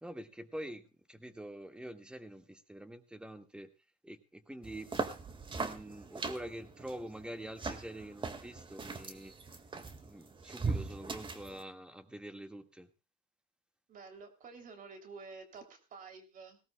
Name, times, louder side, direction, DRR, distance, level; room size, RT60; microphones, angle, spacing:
voice 1, 0.0-3.7 4.0-4.9 5.5-9.3 10.0-12.9, right 1 dB, 5° right, 8 dB, 1.7 m, -46 dB
sound 1, 4.6-11.6, right 4 dB, 30° right, 1.8 m, -40 dB
voice 2, 13.9-16.6, right 4 dB, 55° right, 7 dB, 3.0 m, -50 dB
18.5 x 17.5 x 2.2 m, 0.29 s
cardioid pair, 110°, 17 cm